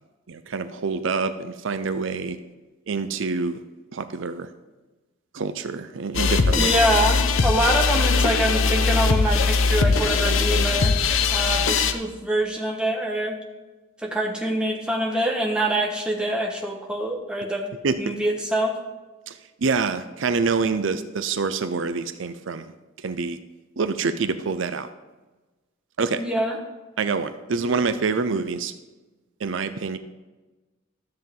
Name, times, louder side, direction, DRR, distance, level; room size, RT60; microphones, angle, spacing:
voice 1, 0.3-2.4 2.9-3.6 3.9-4.5 5.3-6.7 17.8-18.1 19.3-22.7 23.0-23.4 23.8-24.9 26.0-26.2 27.0-28.7 29.4-30.0, right 4 dB, 70° right, 11 dB, 0.5 m, -26 dB
sound 1, 6.1-11.9, left 4 dB, 80° left, 0.7 m, -20 dB
voice 2, 6.5-11.0 11.3-13.4 14.0-18.7 26.1-26.6, right 1 dB, 5° right, 0 dB, 1.2 m, -25 dB
12.5 x 7.6 x 3.7 m, 1.2 s
head